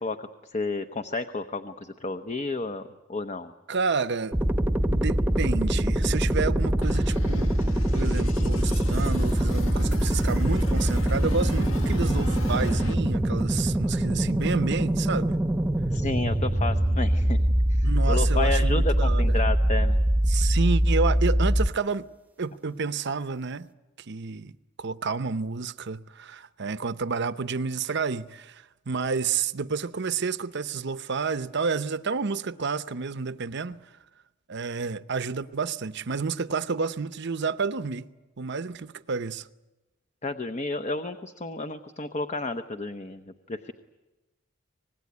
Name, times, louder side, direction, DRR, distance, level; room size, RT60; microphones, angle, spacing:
voice 1, 0.0-3.5 15.9-17.4 17.7-20.0 40.2-43.2 43.5-43.7, left 3 dB, 35° left, 0.9 m, -31 dB
voice 2, 3.7-4.4 4.9-7.5 7.9-15.4 17.8-19.4 20.3-22.1 22.4-23.7 24.0-33.9 34.5-38.1 38.4-39.5, right 5 dB, 60° right, 0.8 m, -30 dB
sound 1, 4.3-21.7, right 1 dB, 10° right, 1.0 m, -23 dB
sound 2, 6.8-12.9, left 2 dB, 75° left, 1.7 m, -39 dB
25.0 x 20.0 x 9.5 m
head